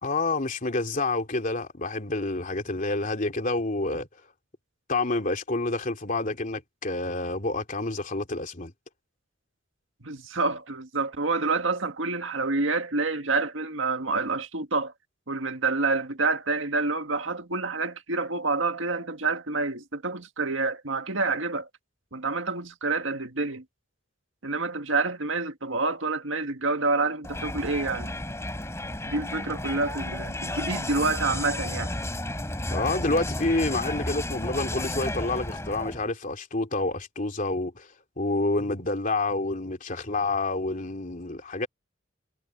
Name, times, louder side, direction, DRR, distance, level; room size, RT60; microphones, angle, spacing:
voice 1, 0.0-4.1 4.9-8.7 32.7-37.9 38.2-41.7, left 2 dB, 45° left, 3.2 m, -28 dB
voice 2, 10.0-14.9 15.3-21.7 22.1-23.6 24.4-28.1 29.1-31.9, right 3 dB, 85° right, 1.8 m, -28 dB
Crowd, 27.2-36.1, left 1 dB, 15° left, 3.0 m, -33 dB
head